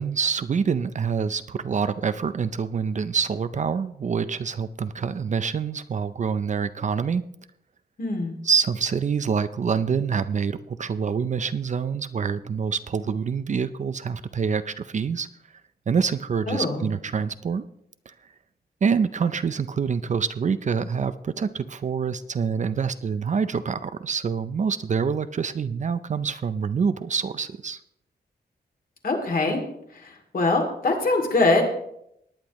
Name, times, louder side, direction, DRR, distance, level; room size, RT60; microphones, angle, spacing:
voice 1, 0.0-7.2 8.4-15.3 15.9-17.6 18.1-18.2 18.8-27.8, right 6 dB, 45° right, 12 dB, 0.5 m, -26 dB
voice 2, 8.0-8.4 16.5-16.8 29.0-29.6 30.0-31.6, left 2 dB, 55° left, 2 dB, 2.5 m, -23 dB
19.0 x 9.7 x 3.0 m, 0.75 s
wide cardioid pair, 165°, 18 cm